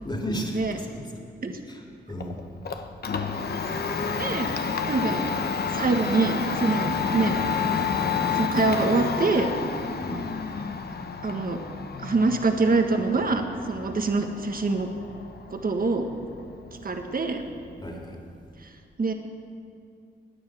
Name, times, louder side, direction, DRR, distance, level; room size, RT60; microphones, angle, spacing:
voice 1, 0.0-0.9 1.7-2.4 10.0-10.3 17.8-18.2, equal, 25° left, 0 dB, 2.9 m, -33 dB
Domestic sounds home sounds, 2.2-18.0, left 5 dB, 55° left, 1.0 m, -30 dB
voice 2, 4.2-4.5 4.9-5.2 5.7-7.4 8.3-9.5 11.2-11.6 12.0-14.9 15.5-16.1 16.8-17.4 19.0-19.1, right 3 dB, 50° right, 5 dB, 1.5 m, -24 dB
16.5 x 9.7 x 6.2 m, 2.4 s
cardioid pair, 50°, 19 cm